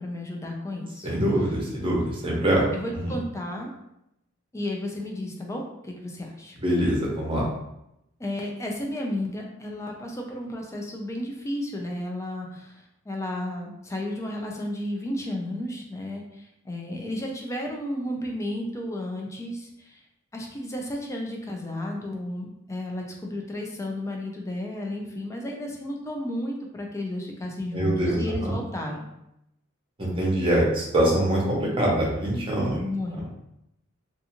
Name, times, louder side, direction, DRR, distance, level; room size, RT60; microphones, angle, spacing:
voice 1, 0.0-1.1 2.7-3.7 4.5-6.6 8.2-20.0 20.3-29.1 32.8-33.2, left 1 dB, 15° left, 1 dB, 0.4 m, -33 dB
voice 2, 1.0-2.6 3.0-3.1 6.6-7.5 27.7-28.5 30.0-32.8, right 1 dB, 25° right, -4 dB, 0.7 m, -24 dB
2.4 x 2.4 x 2.8 m, 0.83 s
head